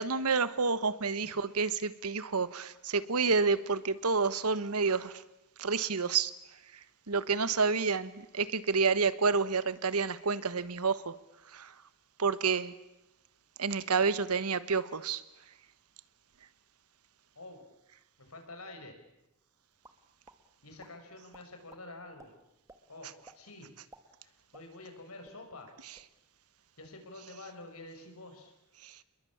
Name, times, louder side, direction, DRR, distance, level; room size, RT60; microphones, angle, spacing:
voice 1, 0.0-5.2 5.6-6.3 7.1-11.2 11.5-11.7 12.2-12.7 13.6-15.2 28.8-29.0, right 4 dB, 85° right, 15 dB, 1.3 m, -29 dB
voice 2, 17.3-17.7 18.2-19.0 20.6-22.4 22.9-23.7 24.2-25.8 26.8-28.5 28.8-29.0, left 2 dB, 75° left, 5 dB, 5.9 m, -48 dB
sound 1, 19.8-20.4 20.8-20.9 21.3-21.8 22.2-22.3 22.7-22.8 23.2-23.4 23.8-25.0 25.2-25.4 25.8-26.1, right 2 dB, 15° right, 1.9 m, -55 dB
28.5 x 21.5 x 8.7 m, 0.91 s
head